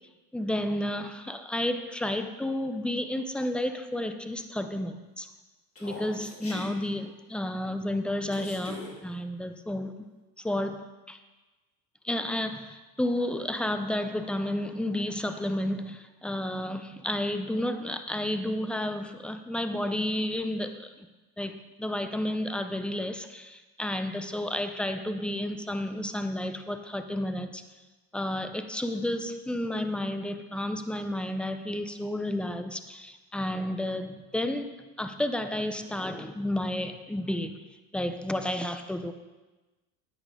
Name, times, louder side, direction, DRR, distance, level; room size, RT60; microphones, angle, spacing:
voice 1, 0.3-5.3 5.8-9.9 10.4-11.2 12.0-21.1 21.4-27.6 28.1-37.6 37.9-39.1, left 1 dB, ahead, 9 dB, 0.5 m, -31 dB
Human voice, 5.7-6.7 8.3-8.9, left 2 dB, 30° left, 2.4 m, -42 dB
9.5 x 8.5 x 3.7 m, 1.2 s
hypercardioid pair, 90°, 46 cm